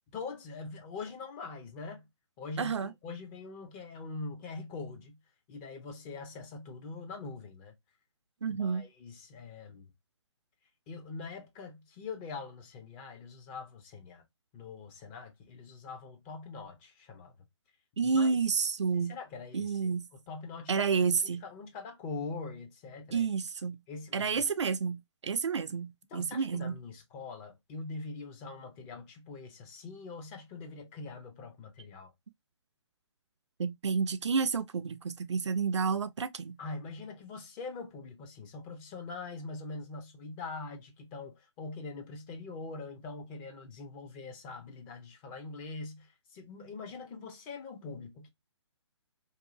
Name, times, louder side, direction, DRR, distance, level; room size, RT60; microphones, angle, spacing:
voice 1, 0.1-2.1 2.4-5.2 5.5-7.7 8.5-9.9 10.9-14.2 14.5-17.3 18.1-18.4 18.9-23.3 23.9-24.3 26.1-32.1 36.6-48.3, left 4 dB, 20° left, 0.6 m, -43 dB
voice 2, 2.6-2.9 8.4-8.9 18.0-19.2 19.5-20.1 20.7-21.4 23.1-23.8 24.1-26.8 33.6-36.6, right 5 dB, 75° right, 0.4 m, -30 dB
2.7 x 2.4 x 2.6 m
figure-of-eight pair, 135°, 15 cm